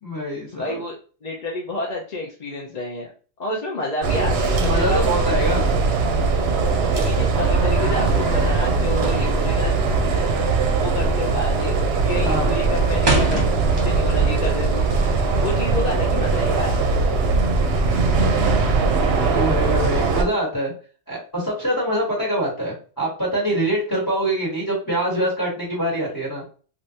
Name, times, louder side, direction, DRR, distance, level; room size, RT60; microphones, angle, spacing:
voice 1, 0.0-0.8 4.6-5.7 12.2-12.5 19.3-20.7 21.1-26.4, right 1 dB, 20° left, -5 dB, 1.2 m, -24 dB
voice 2, 0.5-0.9 1.2-3.1 3.4-5.0 5.5-5.7 6.9-9.7 10.7-14.9 15.4-16.8, left 1 dB, 45° left, -2 dB, 0.6 m, -29 dB
sound 1, 4.0-20.2, right 3 dB, 65° right, 0.8 m, -20 dB
sound 2, 13.1-14.3 14.6-16.1, right 2 dB, 40° right, 1.0 m, -25 dB
3.3 x 2.5 x 2.7 m, 0.38 s
omnidirectional pair, 1.2 m